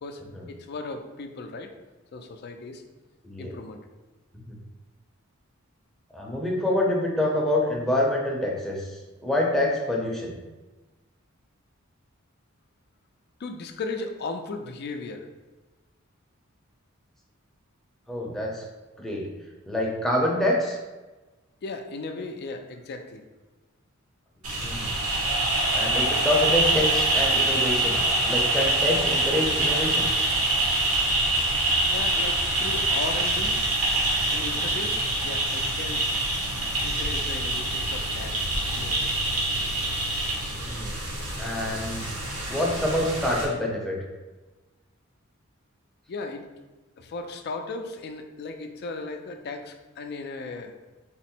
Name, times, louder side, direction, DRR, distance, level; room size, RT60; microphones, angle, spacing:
voice 1, 0.5-1.7 2.1-2.8 3.4-3.8 13.4-15.3 21.6-23.2 31.9-33.6 34.3-36.0 36.8-39.0 46.1-46.5 47.0-50.7, left 3 dB, 50° left, 5 dB, 0.4 m, -36 dB
voice 2, 6.1-10.4 18.1-18.6 19.0-19.3 19.7-20.8 24.6-24.9 25.7-30.1 40.5-40.9 41.4-42.1 42.5-44.0, left 1 dB, ahead, -3 dB, 0.6 m, -26 dB
sound 1, 24.4-43.4, right 2 dB, 75° right, 1.1 m, -25 dB
3.6 x 2.0 x 4.3 m, 1.2 s
head